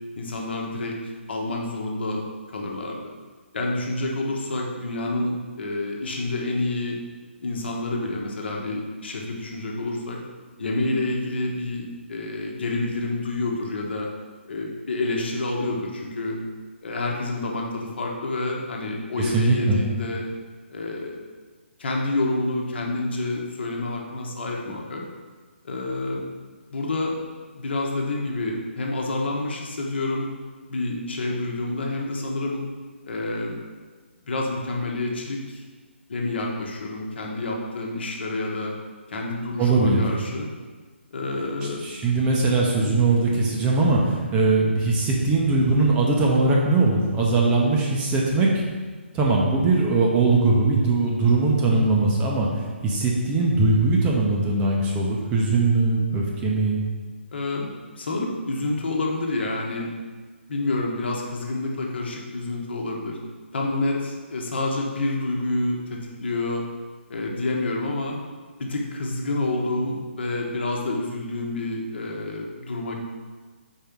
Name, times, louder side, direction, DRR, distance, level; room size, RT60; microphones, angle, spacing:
voice 1, 0.1-1.0 1.3-2.2 2.5-3.1 3.5-7.0 7.4-10.2 10.6-14.1 14.5-16.4 16.8-20.2 20.7-21.2 21.8-25.0 25.6-26.2 26.7-27.1 27.5-30.3 30.7-32.6 33.0-33.6 34.3-35.6 36.1-38.7 39.1-40.5 41.1-41.8 42.7-43.0 51.7-52.0 57.3-57.7 58.0-59.9 60.5-63.2 63.5-66.6 67.1-68.2 68.6-72.9, left 2 dB, 55° left, -1 dB, 1.2 m, -28 dB
voice 2, 19.2-19.8 39.6-40.0 41.8-48.6 49.1-52.5 52.8-56.8, right 3 dB, 15° right, -3 dB, 0.7 m, -20 dB
4.6 x 4.5 x 5.2 m, 1.4 s
figure-of-eight pair, 145°, 7 cm